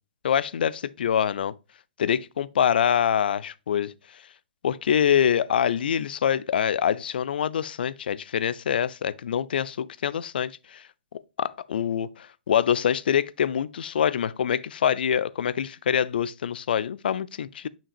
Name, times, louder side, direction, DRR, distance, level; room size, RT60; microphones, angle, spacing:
voice 1, 0.2-1.5 2.0-3.9 4.6-10.8 11.4-12.1 12.5-17.7, left 8 dB, 65° left, 0.5 m, -25 dB
7.2 x 5.7 x 2.4 m
hypercardioid pair, 125°, 5 cm